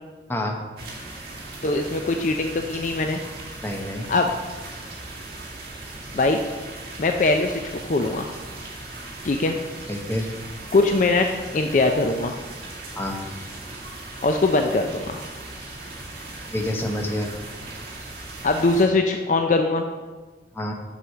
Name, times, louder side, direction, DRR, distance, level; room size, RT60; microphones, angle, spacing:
voice 1, 0.3-0.7 3.6-4.1 9.9-10.3 12.9-13.2 16.5-17.3 20.5-20.7, left 1 dB, 10° left, 1 dB, 0.9 m, -27 dB
sound 1, 0.8-18.8, right 2 dB, 55° right, 1.9 m, -38 dB
voice 2, 1.6-3.2 4.1-4.3 6.1-6.4 7.0-8.3 9.2-9.5 10.7-12.4 14.2-15.2 18.4-19.8, left 3 dB, 45° left, 5 dB, 0.4 m, -21 dB
7.7 x 4.9 x 6.6 m, 1.3 s
head